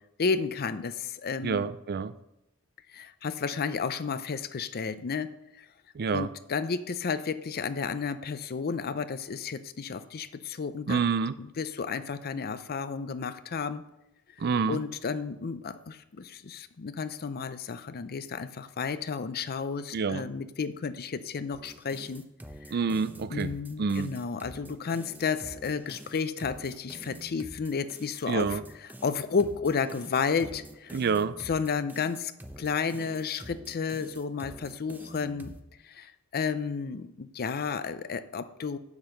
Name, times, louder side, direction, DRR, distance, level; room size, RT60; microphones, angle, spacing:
voice 1, 0.2-1.7 2.9-5.3 5.6-5.7 6.1-11.0 11.4-13.8 14.7-22.2 22.7-22.8 23.3-31.0 31.4-32.3 32.6-35.5 35.8-38.8, left 5 dB, 45° left, 13 dB, 0.5 m, -32 dB
voice 2, 1.4-2.1 5.9-6.3 10.9-11.4 14.4-14.8 19.9-20.2 22.7-23.5 23.8-24.1 28.3-28.6 30.9-31.4, right 5 dB, 45° right, 15 dB, 0.4 m, -27 dB
sound 1, 21.5-35.6, right 1 dB, 10° right, 0.7 m, -47 dB
7.7 x 7.2 x 6.4 m, 0.89 s
head